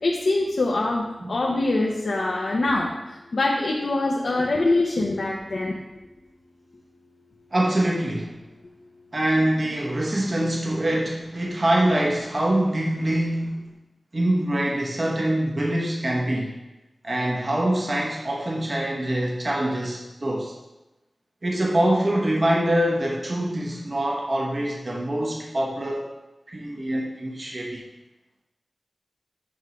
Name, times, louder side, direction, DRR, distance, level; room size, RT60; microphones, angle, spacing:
voice 1, 0.0-2.9 3.3-5.8, left 2 dB, 80° left, -1 dB, 0.7 m, -24 dB
voice 2, 7.5-8.4 9.1-13.6 14.1-16.6 17.0-20.5 21.4-26.1 26.5-27.8, right 1 dB, 50° right, -2 dB, 1.1 m, -24 dB
8.8 x 3.2 x 5.0 m, 1.0 s
wide cardioid pair, 60°, 0 cm